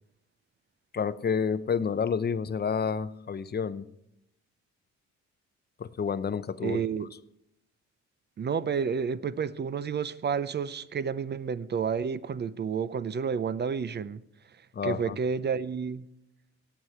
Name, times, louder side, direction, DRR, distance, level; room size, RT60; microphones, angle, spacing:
voice 1, 0.9-3.8 5.8-6.8 14.7-15.2, left 6 dB, 35° left, 0.7 m, -29 dB
voice 2, 6.6-7.1 8.4-14.2 14.8-16.1, right 6 dB, 35° right, 0.6 m, -30 dB
17.5 x 8.0 x 4.5 m
cardioid pair, 90°, 30 cm